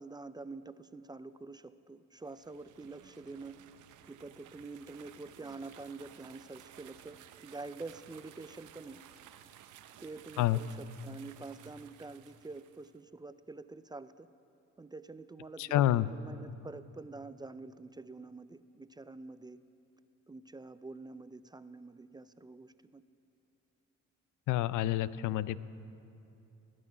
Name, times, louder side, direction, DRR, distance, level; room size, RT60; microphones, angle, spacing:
voice 1, 0.0-3.6 4.1-9.0 10.0-14.3 14.8-19.6 20.3-23.0, right 3 dB, 15° right, 13 dB, 0.4 m, -47 dB
sound 1, 2.2-13.0, right 10 dB, 80° right, 0.7 m, -56 dB
voice 2, 15.6-16.1 24.5-25.6, left 14 dB, 80° left, 17 dB, 0.5 m, -28 dB
17.5 x 6.3 x 9.5 m, 2.8 s
cardioid pair, 90°, 30 cm